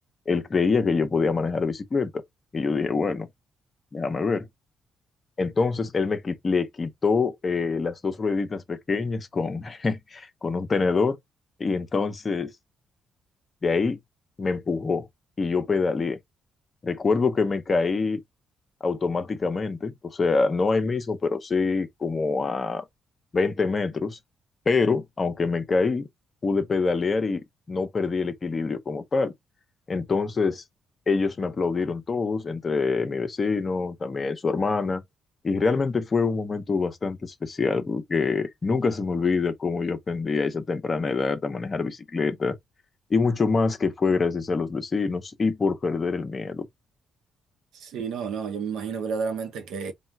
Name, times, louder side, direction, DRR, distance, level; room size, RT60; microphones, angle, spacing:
voice 1, 0.3-2.1 2.5-3.3 3.9-4.5 5.4-11.2 11.6-12.5 13.6-14.0 14.4-15.0 15.4-16.2 16.8-18.2 18.8-22.8 23.3-24.2 24.7-26.1 26.4-29.3 29.9-30.6 31.1-35.0 35.4-42.6 43.1-46.7, left 4 dB, 35° left, 0.8 m, -25 dB
voice 2, 47.7-49.9, right 5 dB, 85° right, 0.8 m, -31 dB
3.7 x 2.3 x 4.4 m
cardioid pair, 105°, 0 cm